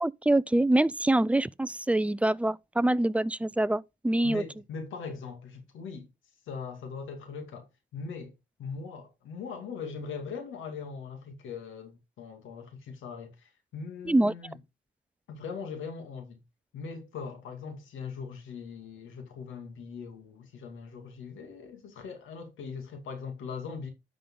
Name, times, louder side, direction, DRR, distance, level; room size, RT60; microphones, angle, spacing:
voice 1, 0.0-4.4 14.1-14.3, right 1 dB, 5° right, 0.3 m, -25 dB
voice 2, 4.2-6.1 6.5-8.3 8.6-14.6 15.3-16.4 16.7-23.9, left 5 dB, 80° left, 2.4 m, -40 dB
10.0 x 5.2 x 3.8 m
cardioid pair, 90°, 20 cm